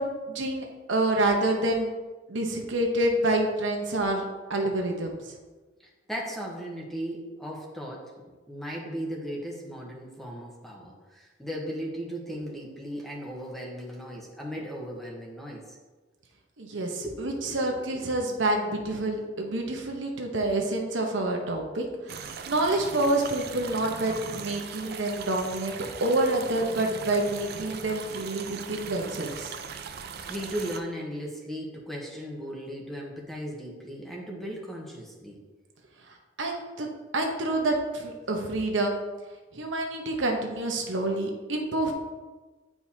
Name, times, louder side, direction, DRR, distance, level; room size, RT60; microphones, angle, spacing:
voice 1, 0.0-1.9 2.3-4.2 4.5-5.2 16.6-29.5 36.4-36.9 37.1-39.0 39.5-41.9, right 2 dB, 85° right, 2 dB, 1.0 m, -28 dB
voice 2, 6.1-8.1 8.5-15.8 17.0-18.2 30.2-35.4, equal, ahead, -2 dB, 1.1 m, -37 dB
sound 1, 22.1-30.8, right 6 dB, 60° right, 0.5 m, -39 dB
8.9 x 4.7 x 2.8 m, 1.3 s
head